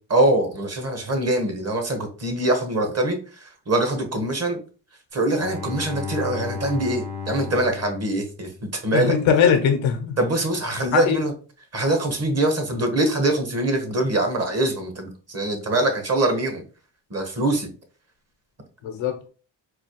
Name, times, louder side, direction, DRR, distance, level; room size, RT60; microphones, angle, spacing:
voice 1, 0.1-3.2 3.7-4.6 5.1-9.2 10.2-11.3 11.7-16.6 17.1-17.7, right 1 dB, 35° right, 6 dB, 1.1 m, -23 dB
Bowed string instrument, 5.3-9.0, left 6 dB, 55° right, 1.6 m, -34 dB
voice 2, 8.9-10.1 10.9-11.2 18.8-19.3, left 7 dB, 85° left, 5 dB, 0.8 m, -20 dB
4.1 x 2.4 x 2.9 m, 0.37 s
cardioid pair, 65°, 45 cm